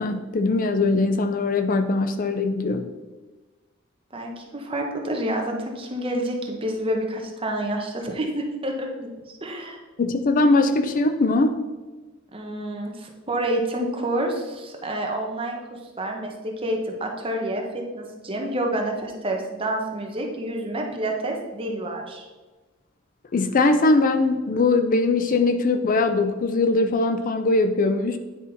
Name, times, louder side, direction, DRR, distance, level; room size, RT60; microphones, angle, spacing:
voice 1, 0.0-2.9 10.0-11.6 23.3-28.2, left 3 dB, 40° left, 8 dB, 0.4 m, -21 dB
voice 2, 4.1-9.1 9.4-9.8 12.3-22.2, right 1 dB, 25° right, 1 dB, 1.0 m, -28 dB
9.5 x 4.1 x 4.1 m, 1.3 s
head